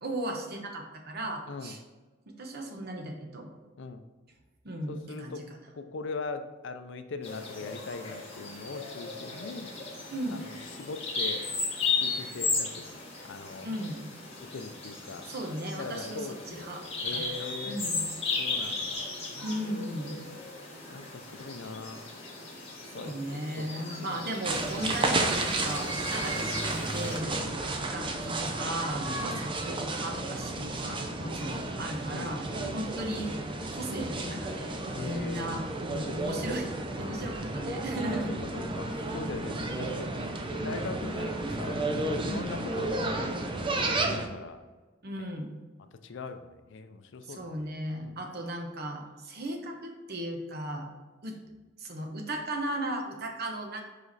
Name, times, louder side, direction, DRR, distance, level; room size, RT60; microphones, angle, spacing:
voice 1, 0.0-1.8 2.3-3.5 4.6-5.4 10.1-10.4 13.6-14.0 15.2-16.8 17.1-18.0 19.4-20.1 23.0-27.4 27.9-32.5 32.7-33.4 33.7-36.7 37.0-38.3 42.2-42.5 45.0-45.5 47.3-50.9 51.2-51.4 51.8-53.8, right 1 dB, 55° right, 3 dB, 1.0 m, -36 dB
voice 2, 4.9-5.5 5.7-9.7 10.3-11.5 11.9-13.0 13.2-13.7 14.4-15.3 15.8-16.7 17.0-17.8 18.4-19.0 19.3-20.4 20.9-22.1 22.9-23.1 23.6-24.3 25.0-25.2 27.2-27.5 29.0-29.5 30.6-31.7 32.1-32.8 34.9-35.5 36.0-36.3 37.0-37.6 38.3-40.1 40.6-43.4 43.7-44.6 45.2-45.3 46.0-47.6 48.0-48.2, left 4 dB, 65° left, 9 dB, 0.5 m, -41 dB
Bird vocalization bird call bird song, 7.2-27.2, left 4 dB, 30° left, 1.7 m, -36 dB
sound 1, 24.4-44.3, right 2 dB, 25° right, 0.6 m, -32 dB
5.1 x 4.9 x 4.0 m, 1.3 s
head